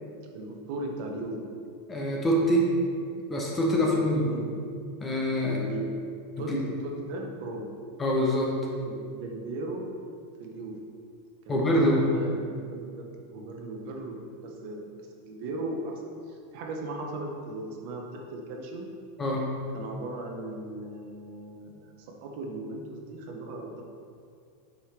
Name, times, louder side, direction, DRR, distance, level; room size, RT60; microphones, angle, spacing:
voice 1, 0.3-1.5 3.7-4.6 5.5-6.0 6.4-7.7 8.8-9.9 10.4-10.9 11.4-18.9 19.7-23.8, right 2 dB, 45° right, 1 dB, 0.9 m, -37 dB
voice 2, 1.9-2.7 3.3-4.2 5.0-5.6 6.5-6.6 8.0-8.5 11.5-12.0 19.2-19.4, equal, 10° left, -2 dB, 0.8 m, -24 dB
8.6 x 5.5 x 3.3 m, 2.3 s
supercardioid pair, 175°, 0 cm